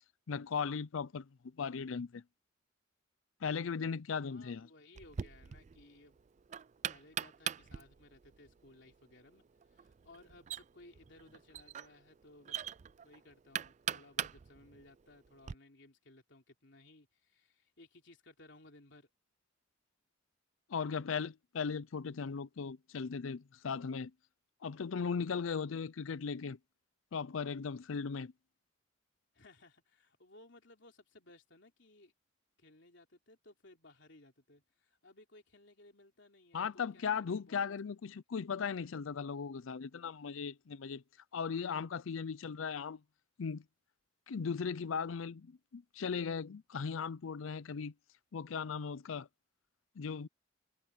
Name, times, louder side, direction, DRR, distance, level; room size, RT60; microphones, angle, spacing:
voice 1, 0.3-1.3 1.6-2.2 3.4-4.7 20.7-24.1 24.6-26.6 27.1-28.3 36.5-41.0 41.3-43.0 43.4-43.6 44.3-47.9 48.3-49.3 50.0-50.3, left 6 dB, 85° left, 0.5 m, -37 dB
voice 2, 4.2-6.2 6.9-9.4 9.7-12.7 13.0-19.1 29.3-32.1 32.6-37.8, left 2 dB, 65° left, 3.6 m, -60 dB
Knock, 4.9-15.5, right 9 dB, 35° right, 0.3 m, -43 dB
head